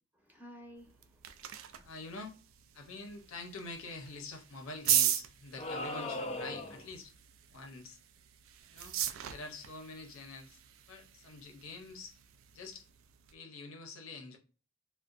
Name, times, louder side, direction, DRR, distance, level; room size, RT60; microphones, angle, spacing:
voice 1, 0.1-2.0 2.8-2.9, equal, 10° right, 0.6 m, -55 dB
sound 1, 0.8-13.3, right 11 dB, 80° right, 0.3 m, -39 dB
voice 2, 1.8-2.3 2.7-7.1 7.5-8.0 8.7-9.0 9.3-10.6 10.9-12.2 12.5-12.9 13.3-14.4, left 3 dB, 85° left, 0.6 m, -46 dB
sound 2, 5.6-6.9, left 1 dB, 30° left, 0.3 m, -38 dB
2.4 x 2.1 x 2.3 m
head